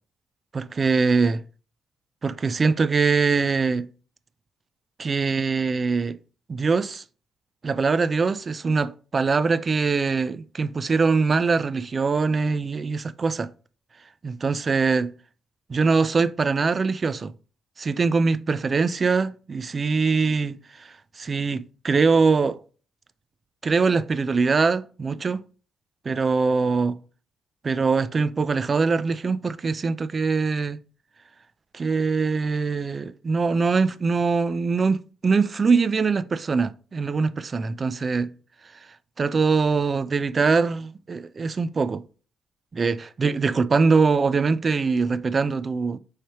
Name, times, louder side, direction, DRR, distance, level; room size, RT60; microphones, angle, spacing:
voice 1, 0.5-1.4 2.2-3.9 5.0-6.2 6.5-7.0 7.6-13.5 14.2-15.1 15.7-17.3 17.8-20.9 21.2-22.6 23.6-25.4 26.1-27.0 27.6-30.8 31.7-38.3 39.2-42.0 42.7-46.0, right 4 dB, 35° right, 0.3 m, -23 dB
4.4 x 3.2 x 2.8 m
cardioid pair, 90°, 0 cm